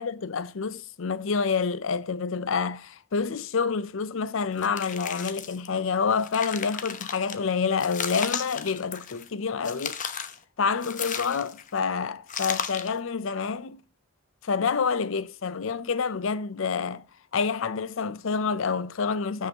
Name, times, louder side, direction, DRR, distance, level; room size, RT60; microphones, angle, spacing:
voice 1, 0.0-10.0 10.6-13.8 14.4-17.0 17.3-19.5, left 5 dB, 75° left, 0.6 m, -28 dB
sound 1, 4.6-5.7 6.1-7.4 7.8-9.3 9.6-10.4 10.8-11.7 12.3-13.0, left 7 dB, 40° left, 0.9 m, -34 dB
16.0 x 5.6 x 2.9 m
head